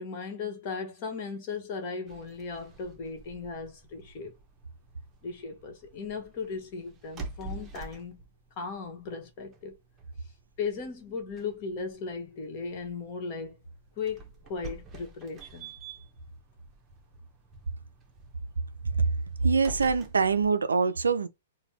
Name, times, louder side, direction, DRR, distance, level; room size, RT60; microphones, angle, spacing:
voice 1, 0.0-4.3 5.2-8.2 8.6-9.8 10.6-13.6 14.0-15.7, left 5 dB, 40° left, 1.2 m, -37 dB
sound 1, 2.1-20.5, right 3 dB, 20° right, 0.8 m, -48 dB
voice 2, 19.4-21.3, right 5 dB, 75° right, 0.4 m, -24 dB
4.1 x 2.2 x 3.5 m
figure-of-eight pair, 110°, 0 cm